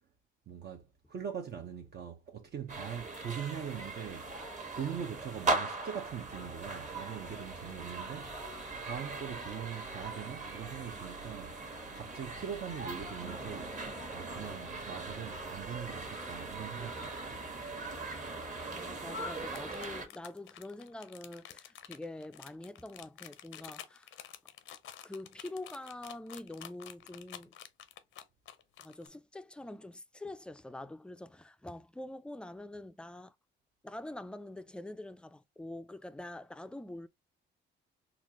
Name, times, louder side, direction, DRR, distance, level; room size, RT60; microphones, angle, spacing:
voice 1, 0.5-4.3 4.7-8.3 8.8-17.4, right 8 dB, 55° right, 0.8 m, -42 dB
sound 1, 2.7-20.1, right 2 dB, 40° right, 1.3 m, -39 dB
voice 2, 18.6-24.1 25.0-27.5 28.8-33.3 33.8-37.1, left 1 dB, 5° left, 0.4 m, -45 dB
sound 2, 19.5-29.1, left 11 dB, 80° left, 0.6 m, -50 dB
4.1 x 2.4 x 2.9 m
cardioid pair, 90°, 20 cm